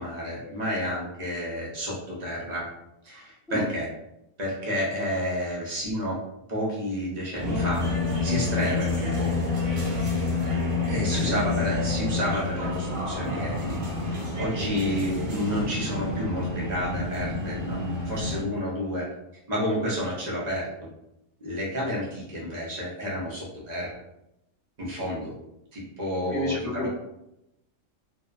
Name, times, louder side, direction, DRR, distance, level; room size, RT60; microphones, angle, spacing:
voice 1, 0.0-2.7 3.0-3.9 4.4-6.2 6.5-7.8 8.2-9.3 10.9-13.8 14.1-19.1 19.5-20.7 21.4-24.0 24.8-25.3 25.7-26.9, equal, 45° right, -5 dB, 0.6 m, -30 dB
sound 1, 7.3-18.4, right 1 dB, 65° right, 1.1 m, -36 dB
sound 2, 7.4-18.4, left 4 dB, 40° left, 1.1 m, -29 dB
voice 2, 26.3-26.9, equal, 5° left, -8 dB, 0.6 m, -30 dB
2.7 x 2.1 x 2.3 m, 0.85 s
omnidirectional pair, 1.5 m